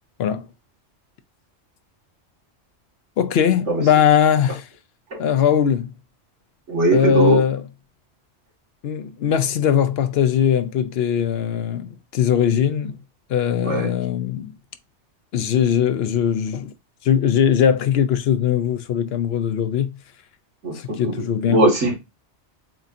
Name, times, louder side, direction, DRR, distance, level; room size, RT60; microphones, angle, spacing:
voice 1, 3.2-4.7 5.2-5.9 6.9-7.6 8.8-13.0 13.3-14.5 15.3-16.7 17.0-20.0 20.7-21.7, left 9 dB, 65° left, 0.8 m, -20 dB
voice 2, 6.7-7.4 13.6-13.9 20.6-21.1 21.5-21.9, right 2 dB, 75° right, 2.0 m, -19 dB
7.5 x 2.7 x 2.5 m
omnidirectional pair, 1.2 m